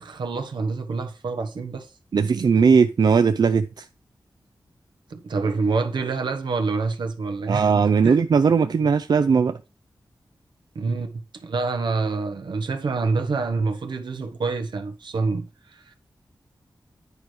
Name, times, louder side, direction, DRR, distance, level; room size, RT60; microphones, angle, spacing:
voice 1, 0.0-1.9 5.1-7.7 8.0-8.2 10.7-15.9, right 4 dB, 85° right, 1.2 m, -27 dB
voice 2, 2.1-3.9 7.5-9.6, right 5 dB, 65° right, 0.4 m, -18 dB
9.6 x 4.7 x 4.8 m
wide cardioid pair, 70°, 8 cm